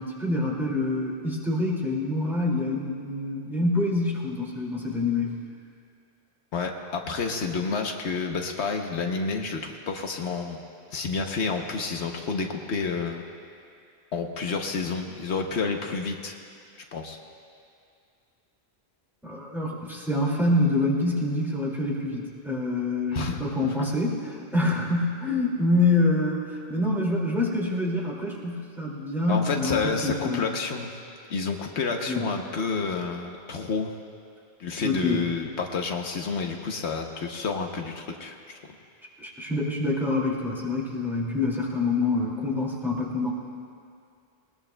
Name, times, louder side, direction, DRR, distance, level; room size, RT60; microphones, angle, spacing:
voice 1, 0.0-5.3 19.2-30.5 32.1-32.3 34.8-35.2 39.2-43.3, left 2 dB, ahead, -4 dB, 2.2 m, -26 dB
voice 2, 6.5-10.6 10.9-13.2 14.1-16.3 16.9-17.2 23.1-23.4 29.3-30.9 31.3-33.9 34.6-38.3, left 4 dB, 75° left, 3 dB, 1.1 m, -29 dB
20.5 x 20.0 x 2.2 m, 2.4 s
omnidirectional pair, 1.1 m